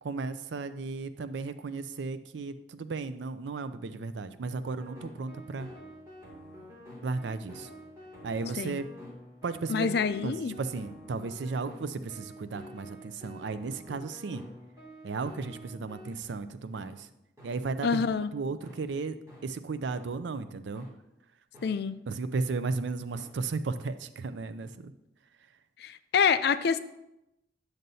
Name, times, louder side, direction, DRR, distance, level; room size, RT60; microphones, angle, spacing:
voice 1, 0.0-5.7 7.0-7.7 8.2-8.8 9.4-9.9 10.2-14.4 15.0-17.1 17.4-18.0 18.3-19.2 19.4-20.9 22.1-24.9, right 4 dB, 75° right, 12 dB, 0.4 m, -34 dB
sound 1, 4.6-16.2 16.7-16.9 17.4-17.5 18.0-18.1 18.6-18.8 19.3-19.4 20.0-20.1 20.7-20.9 21.5-21.7 22.3-22.4 23.1-23.3, equal, 20° right, 2.3 m, -48 dB
voice 2, 9.7-10.5 17.8-18.3 21.6-22.0 25.8-26.8, left 6 dB, 60° left, 12 dB, 0.4 m, -27 dB
9.1 x 6.6 x 2.7 m, 0.89 s
head